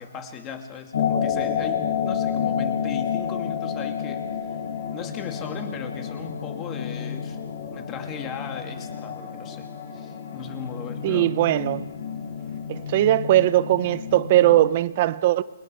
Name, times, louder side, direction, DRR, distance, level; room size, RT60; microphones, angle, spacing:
voice 1, 0.0-4.2 4.9-7.4 7.7-9.7 9.9-11.3, left 6 dB, 15° left, 2.6 m, -37 dB
sound 1, 0.9-14.7, left 7 dB, 60° left, 6.7 m, -30 dB
voice 2, 11.0-11.9 12.7-15.4, right 14 dB, 30° right, 0.8 m, -20 dB
29.0 x 22.5 x 7.0 m
hypercardioid pair, 170°, 0 cm